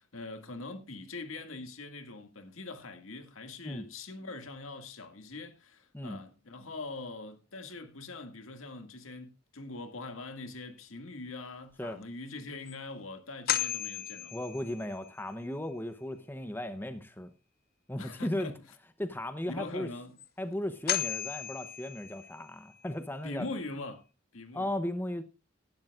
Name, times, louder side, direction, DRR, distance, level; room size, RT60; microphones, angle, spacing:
voice 1, 0.0-14.5 18.0-18.6 19.5-20.2 23.2-24.0 24.3-24.8, left 3 dB, 85° left, 2.1 m, -42 dB
sound 1, 12.0-12.1 12.7-12.8 13.5-15.1 20.2-20.3 20.9-22.5, left 11 dB, 50° left, 0.9 m, -34 dB
voice 2, 14.3-17.3 17.9-18.5 19.0-19.9 20.4-23.5 24.5-25.2, left 1 dB, 10° left, 0.8 m, -36 dB
18.0 x 12.0 x 2.4 m
head